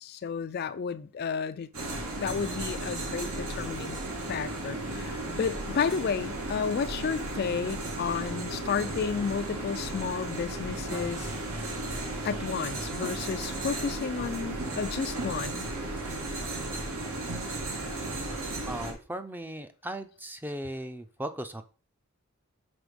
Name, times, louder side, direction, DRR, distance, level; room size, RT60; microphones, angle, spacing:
voice 1, 0.0-1.7 2.2-4.0 4.3-11.3 12.2-15.7, left 6 dB, 45° left, 0.3 m, -32 dB
sound 1, 1.7-18.9, right 2 dB, 85° right, 2.0 m, -35 dB
voice 2, 18.6-21.6, right 1 dB, 10° right, 0.5 m, -37 dB
6.2 x 4.3 x 5.2 m
head